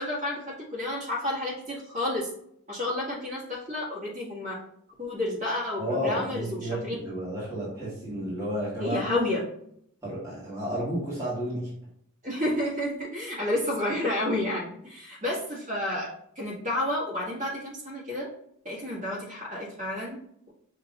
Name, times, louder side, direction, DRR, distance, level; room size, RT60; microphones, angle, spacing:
voice 1, 0.0-2.3 2.7-4.6 5.0-7.0 8.8-9.4 12.2-16.1 16.3-18.3 18.6-20.2, left 1 dB, 35° right, -5 dB, 1.8 m, -30 dB
voice 2, 5.8-9.0 10.0-11.7, equal, 15° right, -9 dB, 1.4 m, -32 dB
5.7 x 2.5 x 3.5 m, 0.70 s
head